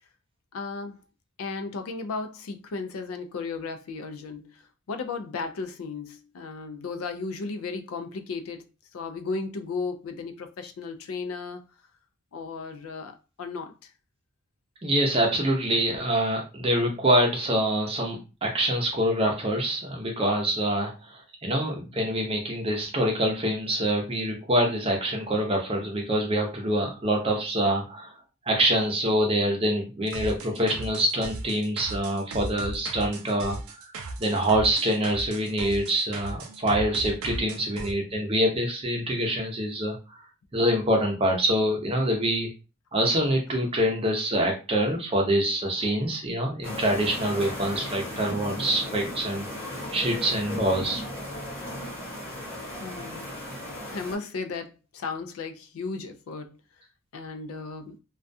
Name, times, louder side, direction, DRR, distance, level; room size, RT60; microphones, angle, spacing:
voice 1, 0.5-1.0 1.4-11.6 12.3-13.9 37.7-38.0 52.8-53.3 53.9-56.6 57.1-58.0, left 4 dB, 70° left, 0.4 m, -35 dB
voice 2, 14.8-28.1 28.5-33.9 34.2-40.2 40.5-42.5 42.9-49.5 49.9-51.0, right 1 dB, 25° right, 0.6 m, -25 dB
sound 1, 30.1-37.9, right 3 dB, 80° right, 0.4 m, -37 dB
sound 2, 46.6-54.2, equal, 5° left, 1.0 m, -36 dB
2.3 x 2.2 x 2.5 m
head